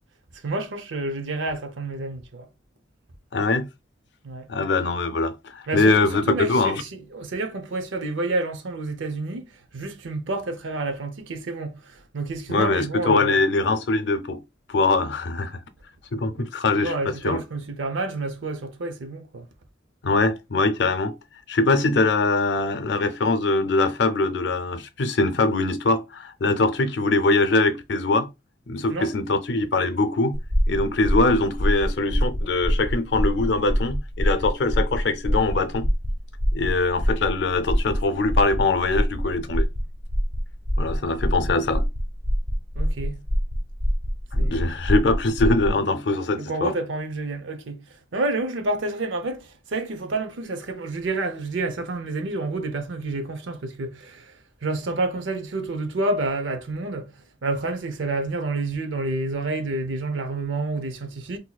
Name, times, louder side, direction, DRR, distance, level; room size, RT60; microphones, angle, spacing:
voice 1, 0.4-2.5 4.2-4.5 5.7-13.4 16.4-16.5 16.7-19.5 28.9-29.1 42.7-43.2 44.4-44.7 46.3-47.8 48.1-54.3 54.6-61.4, right 2 dB, 85° right, 0.6 m, -29 dB
voice 2, 3.3-3.7 4.5-6.8 12.5-14.4 14.7-15.6 16.1-16.9 17.2-17.4 20.0-21.1 21.5-28.3 28.7-30.4 30.7-35.9 36.5-39.7 40.8-41.8 44.3-46.7, left 3 dB, 65° left, 0.5 m, -22 dB
sound 1, 30.3-45.8, equal, 60° right, 1.7 m, -25 dB
4.0 x 2.7 x 2.2 m
head